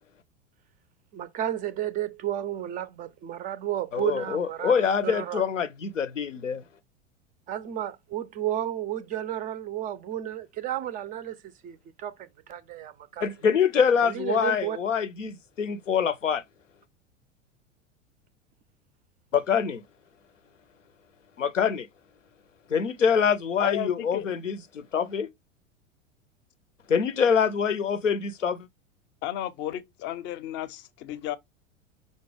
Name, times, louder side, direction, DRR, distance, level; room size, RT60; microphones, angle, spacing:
voice 1, 1.1-5.4 7.5-11.4 11.6-13.3 14.0-14.8, right 12 dB, 25° right, 0.4 m, -32 dB
voice 2, 3.9-6.6 13.2-16.4 19.3-19.8 21.4-21.9 22.7-25.3 26.9-28.7, left 7 dB, 85° left, 0.7 m, -25 dB
voice 3, 23.6-24.3 29.2-31.4, left 13 dB, 30° left, 0.6 m, -33 dB
5.3 x 2.1 x 4.7 m
figure-of-eight pair, 85°, 37 cm